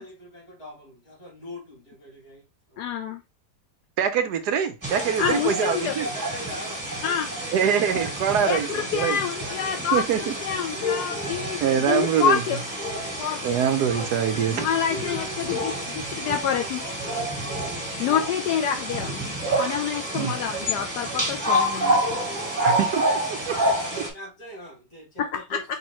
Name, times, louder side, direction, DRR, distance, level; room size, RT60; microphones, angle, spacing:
voice 1, 0.0-2.8 5.2-8.9 9.4-11.3 12.9-13.1 14.6-16.1 23.3-25.6, equal, 60° left, 3.2 m, -42 dB
voice 2, 2.8-3.2 5.2-6.0 7.0-7.3 8.4-12.6 13.2-13.6 14.5-15.7 16.1-16.8 18.0-22.0 25.2-25.6, left 8 dB, 75° left, 1.1 m, -27 dB
voice 3, 4.0-6.1 7.5-9.2 9.9-10.3 11.6-12.4 13.4-14.7 20.1-20.3 22.6-23.6, right 8 dB, 75° right, 1.2 m, -24 dB
sound 1, 4.8-24.1, right 1 dB, 10° right, 1.7 m, -29 dB
4.9 x 3.5 x 3.0 m
omnidirectional pair, 1.8 m